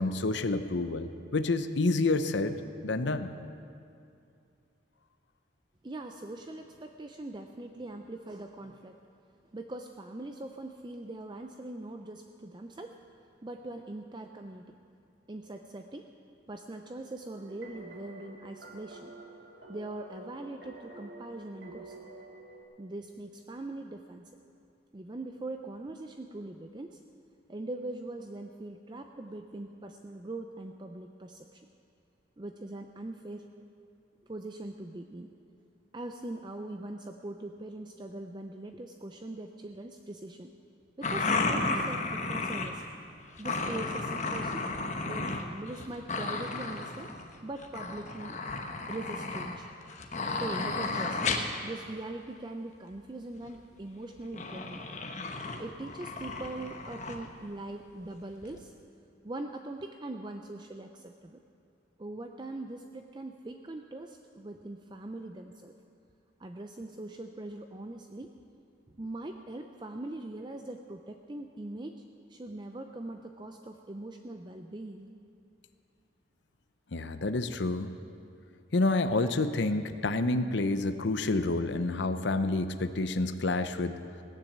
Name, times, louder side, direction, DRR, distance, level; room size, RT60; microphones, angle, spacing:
voice 1, 0.0-2.6 2.8-3.3 76.9-77.9 78.7-84.0, left 2 dB, 65° left, 10 dB, 0.7 m, -28 dB
voice 2, 5.8-9.0 9.5-13.0 13.4-14.7 15.3-16.1 16.5-19.1 19.7-21.9 22.8-24.3 24.9-27.0 27.5-31.6 32.4-33.5 34.2-35.3 35.9-40.5 41.0-42.8 43.4-44.7 45.0-47.1 47.4-48.4 48.9-49.7 50.4-54.9 55.5-58.7 59.2-61.4 62.0-65.7 66.4-68.3 69.0-72.0 72.3-75.1, right 2 dB, 25° right, 5 dB, 0.5 m, -41 dB
sound 1, 17.4-22.6, right 2 dB, 65° right, 2.1 m, -49 dB
sound 2, 41.0-42.8 43.4-45.4 45.7-47.3 47.6-51.6 53.4-53.5 54.3-57.2 58.0-58.1 58.4-58.6, left 3 dB, 35° left, 1.0 m, -33 dB
17.5 x 10.0 x 7.4 m, 2.5 s
head